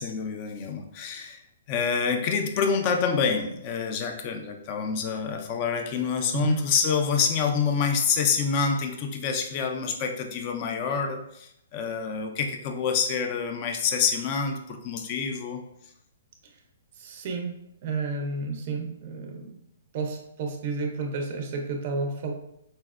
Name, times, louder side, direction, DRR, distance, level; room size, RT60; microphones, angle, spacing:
voice 1, 0.0-1.4 1.7-15.6, left 6 dB, 30° left, 5 dB, 0.4 m, -27 dB
voice 2, 6.3-6.7 17.0-17.5 17.8-19.5 19.9-22.3, right 4 dB, 40° right, 3 dB, 0.4 m, -31 dB
4.0 x 2.0 x 2.3 m, 0.77 s
hypercardioid pair, 160°, 0 cm